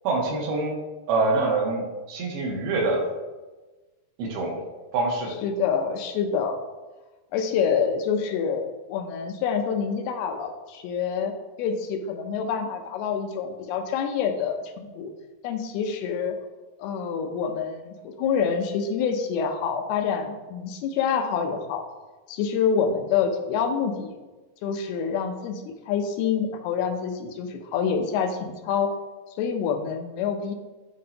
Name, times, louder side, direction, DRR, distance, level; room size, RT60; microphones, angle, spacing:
voice 1, 0.0-0.7 1.1-3.0 4.2-4.7 4.9-5.3, right 3 dB, 80° right, -1 dB, 3.0 m, -25 dB
voice 2, 5.4-6.6 7.3-15.1 15.4-16.4 16.8-21.8 22.3-24.1 24.6-28.9 29.4-30.5, left 6 dB, 80° left, 5 dB, 2.6 m, -27 dB
12.0 x 4.2 x 2.8 m, 1.2 s
omnidirectional pair, 4.5 m